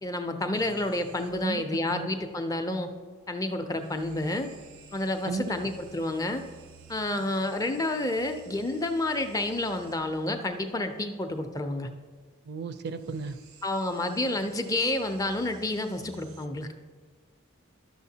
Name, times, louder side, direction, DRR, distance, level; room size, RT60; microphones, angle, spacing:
voice 1, 0.0-2.9 3.3-4.5 4.9-6.4 6.9-11.9 13.6-16.7, left 2 dB, 15° left, 6 dB, 0.4 m, -29 dB
sound 1, 0.5-1.8 3.7-10.4 12.9-16.5, right 5 dB, 85° right, 0.7 m, -53 dB
voice 2, 12.4-13.4, right 4 dB, 50° right, 10 dB, 0.4 m, -34 dB
12.0 x 6.4 x 2.8 m, 1.5 s
head